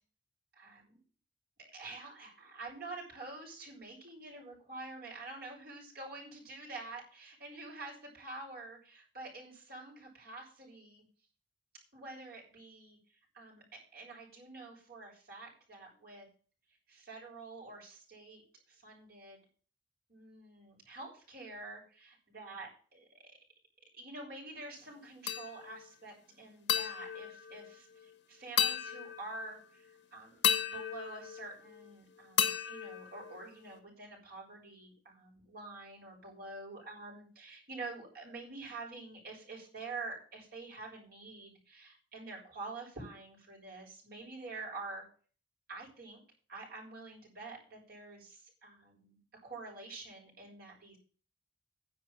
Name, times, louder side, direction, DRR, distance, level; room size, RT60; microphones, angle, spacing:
voice 1, 0.5-1.0 1.6-11.0 11.9-13.0 13.3-13.6 13.9-16.3 16.9-19.4 20.1-23.3 24.0-27.9 28.3-45.0 45.7-46.2 46.5-51.0, right 3 dB, 55° right, -2 dB, 7.0 m, -47 dB
sound 1, 25.3-25.9 26.7-28.1 28.6-29.6 30.4-31.9 32.4-33.8, left 9 dB, 75° left, 1.6 m, -34 dB
11.0 x 7.0 x 7.6 m, 0.39 s
head